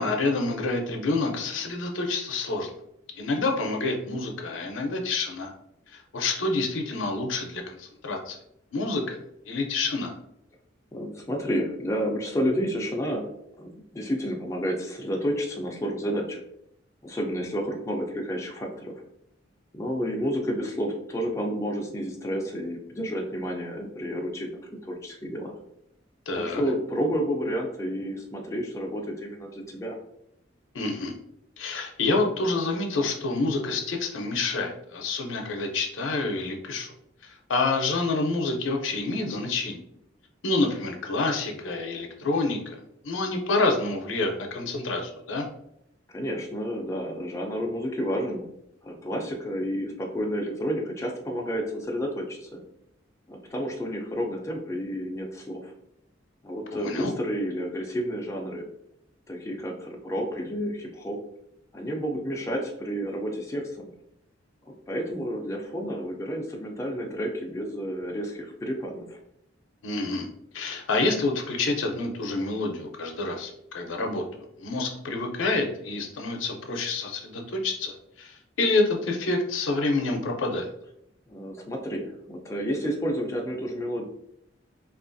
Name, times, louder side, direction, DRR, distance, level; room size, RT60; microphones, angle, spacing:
voice 1, 0.0-2.7 3.2-5.5 5.9-8.4 8.7-9.2 9.5-10.1 26.3-26.6 30.7-31.1 31.6-36.9 37.2-39.8 40.4-42.8 43.0-45.5 56.7-57.1 69.8-70.3 70.5-74.2 74.6-80.7, left 3 dB, 80° left, 2 dB, 0.5 m, -28 dB
voice 2, 10.9-13.3 13.6-16.4 17.0-19.0 19.7-25.5 26.4-30.0 46.1-48.5 48.8-52.6 53.3-55.7 56.4-58.6 59.3-61.2 61.7-63.9 64.9-69.2 81.3-84.0, equal, 15° left, 0 dB, 0.4 m, -30 dB
2.9 x 2.4 x 2.5 m, 0.77 s
head